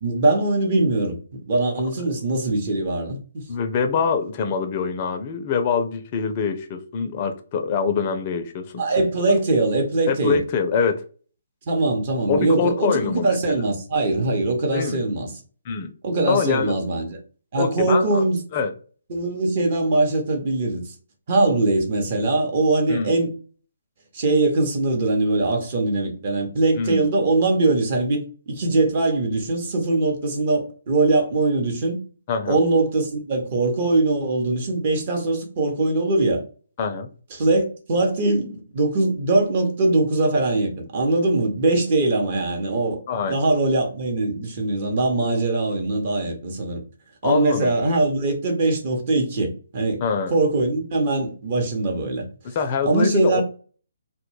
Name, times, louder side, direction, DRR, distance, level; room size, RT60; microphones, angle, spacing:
voice 1, 0.0-3.4 8.8-10.4 11.7-15.3 16.0-17.2 17.5-18.4 19.1-20.9 21.3-23.3 24.1-32.0 32.5-36.4 37.3-43.0 43.3-46.8 47.2-50.0 50.3-52.3 52.9-53.4, right 2 dB, 40° right, 0.8 m, -22 dB
voice 2, 3.5-8.8 9.3-9.4 10.1-11.0 12.3-13.4 14.7-15.1 15.7-15.9 16.3-16.8 17.6-18.3 18.5-18.7 22.9-23.2 26.7-27.1 32.3-32.6 36.8-37.1 43.1-43.4 47.2-47.7 50.0-50.3 52.4-53.4, left 5 dB, 35° left, 0.4 m, -24 dB
2.1 x 2.1 x 3.1 m
figure-of-eight pair, 140°, 0 cm